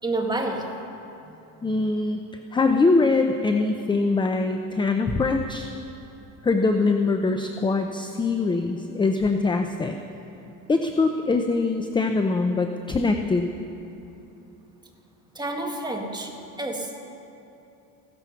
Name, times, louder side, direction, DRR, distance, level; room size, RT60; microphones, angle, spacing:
voice 1, 0.0-0.8 15.3-17.1, right 2 dB, 10° right, 2 dB, 1.6 m, -29 dB
voice 2, 1.6-5.7 6.4-9.9 10.7-13.5, left 3 dB, 15° left, 6 dB, 0.5 m, -23 dB
16.0 x 13.0 x 5.8 m, 2.8 s
cardioid pair, 130°, 38 cm